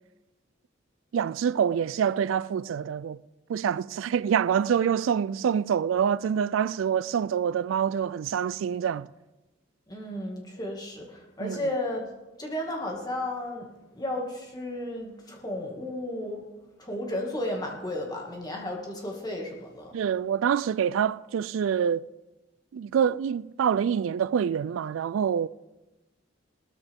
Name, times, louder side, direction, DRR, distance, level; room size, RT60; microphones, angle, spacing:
voice 1, 1.1-3.2 3.5-9.1 11.4-11.6 19.9-22.1 22.7-25.5, right 8 dB, 90° right, 0.3 m, -26 dB
voice 2, 9.9-12.1 12.4-16.5 16.8-20.0, left 1 dB, 20° left, 2.1 m, -33 dB
19.0 x 13.0 x 3.6 m
head